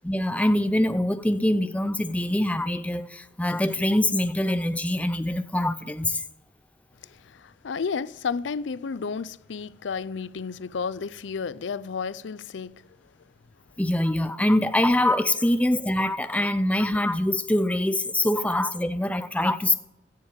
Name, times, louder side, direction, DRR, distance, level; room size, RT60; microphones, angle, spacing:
voice 1, 0.0-6.2 13.8-19.7, left 1 dB, 5° left, 0.6 m, -24 dB
voice 2, 7.0-12.8, left 5 dB, 75° left, 0.5 m, -32 dB
16.0 x 7.4 x 7.8 m
head